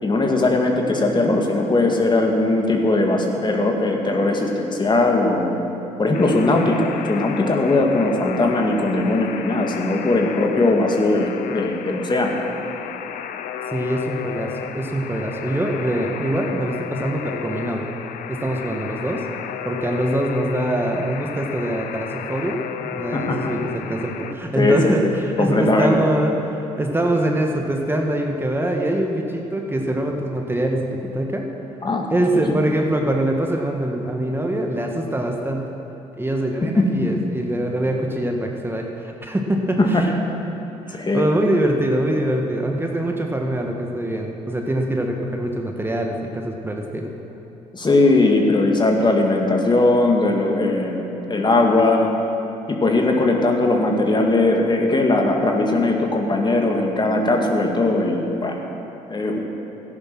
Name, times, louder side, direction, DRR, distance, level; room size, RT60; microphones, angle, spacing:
voice 1, 0.0-5.6 6.0-12.3 23.1-23.5 24.6-25.0 25.4-26.1 31.8-32.1 32.5-32.6 36.6-36.9 39.8-40.1 40.9-41.3 47.7-51.0 51.3-52.1 52.7-58.6 59.1-59.4, left 2 dB, 30° left, 2 dB, 2.1 m, -19 dB
Alarm, 6.1-24.3, left 8 dB, 70° left, 0.7 m, -33 dB
voice 2, 13.7-17.9 18.3-19.2 19.6-31.5 32.1-35.6 36.1-40.1 40.9-47.1, right 1 dB, 15° right, 1 dB, 1.5 m, -24 dB
13.5 x 10.5 x 6.1 m, 2.9 s
supercardioid pair, 60°, 15 cm